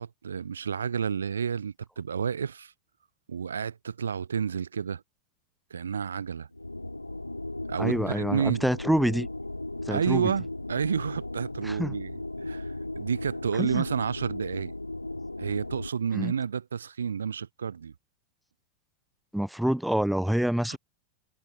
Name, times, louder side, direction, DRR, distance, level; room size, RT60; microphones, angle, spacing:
voice 1, 0.0-2.7 3.3-5.0 5.7-6.5 7.7-8.7 9.9-14.7 15.4-17.9 20.7-20.8, right 7 dB, 70° right, 0.5 m, -30 dB
sound 1, 6.5-15.9, left 2 dB, 85° left, 0.5 m, -36 dB
voice 2, 7.8-9.3 9.9-10.3 11.6-12.0 13.5-13.8 16.1-16.3 19.3-20.8, equal, ahead, 0.4 m, -27 dB
figure-of-eight pair, 90°, 0 cm